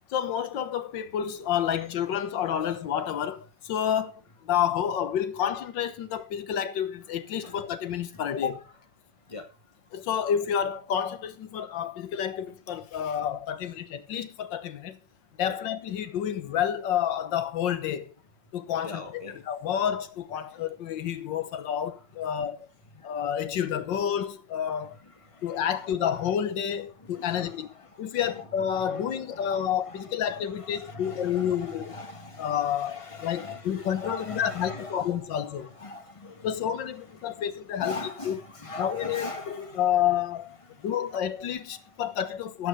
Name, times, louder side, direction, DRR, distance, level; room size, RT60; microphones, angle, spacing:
voice 1, 0.1-4.1 4.5-8.6 9.9-15.0 15.4-18.1 18.5-22.7 23.0-25.0 25.4-27.7 28.0-32.0 32.4-35.7 36.4-38.0 38.3-38.4 38.8-40.6 40.8-42.7, left 9 dB, 80° left, 1.8 m, -29 dB
voice 2, 18.8-19.4 25.7-25.9 27.2-27.9 28.2-28.5 28.8-36.7 37.8-39.8 41.1-41.4, left 2 dB, 15° left, 1.9 m, -41 dB
13.5 x 8.4 x 4.0 m
omnidirectional pair, 2.0 m